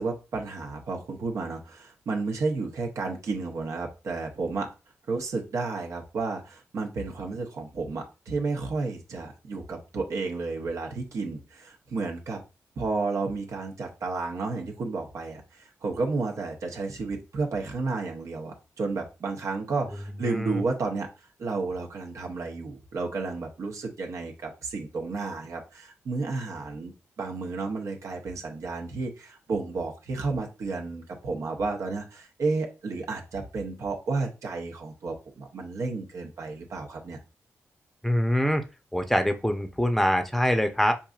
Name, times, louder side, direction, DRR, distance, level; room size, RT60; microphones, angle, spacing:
voice 1, 0.0-4.7 5.1-12.4 12.8-21.1 21.4-26.9 27.2-37.2, right 3 dB, 70° right, 2 dB, 0.8 m, -32 dB
voice 2, 20.1-20.6 38.0-38.6 38.9-40.9, equal, 5° left, 7 dB, 0.7 m, -24 dB
4.6 x 2.6 x 2.4 m, 0.30 s
supercardioid pair, 50°, 6 cm